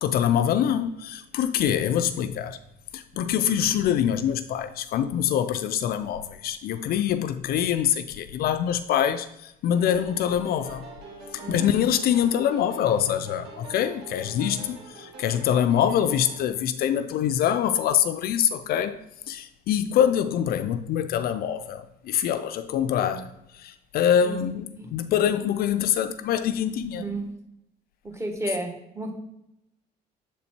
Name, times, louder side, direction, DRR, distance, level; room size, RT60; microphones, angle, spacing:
voice 1, 0.0-2.6 2.9-10.8 11.3-27.1, left 9 dB, 65° left, 0.4 m, -25 dB
sound 1, 9.7-16.4, right 2 dB, 80° right, 1.8 m, -44 dB
voice 2, 11.4-11.9 23.0-23.2 24.2-24.4 24.8-24.9 26.9-27.3 28.0-29.1, right 2 dB, 15° right, 1.2 m, -33 dB
7.2 x 4.1 x 4.4 m
cardioid pair, 110°, 17 cm